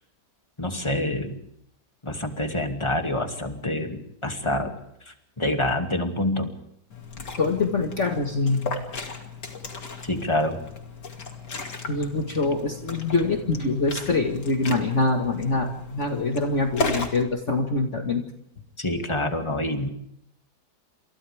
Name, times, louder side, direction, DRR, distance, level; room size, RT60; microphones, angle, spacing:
voice 1, 0.6-1.4 2.0-4.8 5.1-6.5 10.0-10.6 18.8-19.9, left 1 dB, 15° left, 4 dB, 2.4 m, -27 dB
Liquid, 6.9-17.2, left 3 dB, 80° left, 3.2 m, -35 dB
voice 2, 7.4-8.7 11.9-18.2, left 3 dB, 45° left, 2 dB, 2.1 m, -24 dB
29.0 x 27.5 x 3.6 m, 0.75 s
omnidirectional pair, 1.8 m